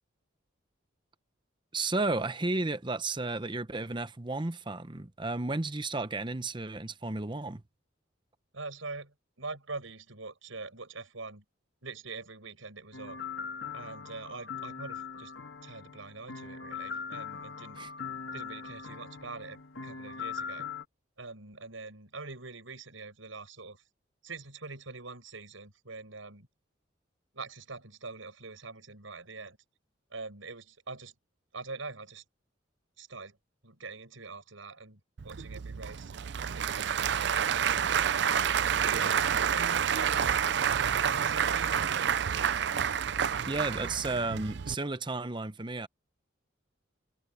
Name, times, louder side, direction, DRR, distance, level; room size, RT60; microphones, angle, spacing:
voice 1, 1.7-7.6 17.8-17.9 43.4-45.9, right 2 dB, 25° right, 0.8 m, -33 dB
voice 2, 8.5-11.4 11.8-13.2 13.7-15.3 15.6-17.8 18.3-20.7 21.2-23.8 24.2-26.5 27.3-29.6 30.1-31.1 31.5-32.2 33.0-33.4 33.6-36.1 36.6-37.9 38.7-40.4 40.7-42.0, right 3 dB, 90° right, 6.2 m, -44 dB
sound 1, 12.9-20.8, left 6 dB, 75° left, 2.1 m, -41 dB
Applause / Crowd, 35.2-44.7, right 8 dB, 60° right, 0.5 m, -29 dB
head